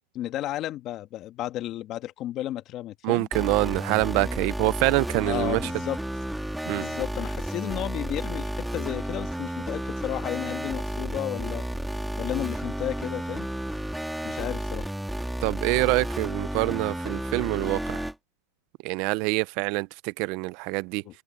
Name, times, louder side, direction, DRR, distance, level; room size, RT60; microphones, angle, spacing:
voice 1, 0.1-3.3 4.1-4.2 5.3-6.0 6.7-11.6 12.2-13.5 14.2-14.9 21.0-21.2, left 13 dB, 30° left, 1.4 m, -33 dB
voice 2, 3.0-5.6 6.7-6.8 15.4-18.1 18.8-21.0, right 23 dB, 45° right, 0.5 m, -25 dB
sound 1, 3.3-18.1, right 1 dB, ahead, 3.2 m, -32 dB
supercardioid pair, 160°, 0 cm